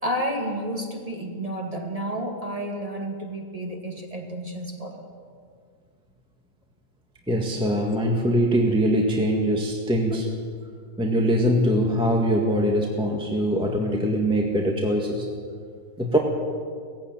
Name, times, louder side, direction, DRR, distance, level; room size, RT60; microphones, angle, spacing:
voice 1, 0.0-5.0, equal, 20° right, 1 dB, 2.5 m, -31 dB
voice 2, 7.3-10.3 11.0-15.3 16.0-16.2, equal, 5° right, 0 dB, 1.8 m, -22 dB
18.0 x 16.0 x 9.1 m, 2.1 s
omnidirectional pair, 1.8 m